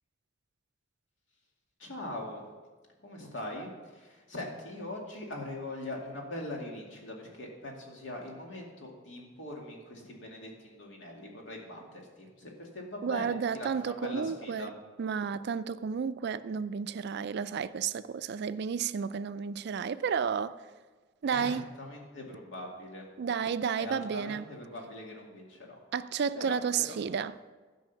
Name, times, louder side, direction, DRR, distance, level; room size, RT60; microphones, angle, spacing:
voice 1, 1.8-2.4 3.0-14.7 21.3-23.1 23.8-25.8 26.3-26.6 26.9-27.0, left 1 dB, 75° left, 2.3 m, -41 dB
voice 2, 13.0-14.7 15.0-20.6 21.2-21.6 23.2-24.4 25.9-27.3, right 6 dB, 60° right, 0.4 m, -32 dB
12.0 x 5.4 x 6.9 m
head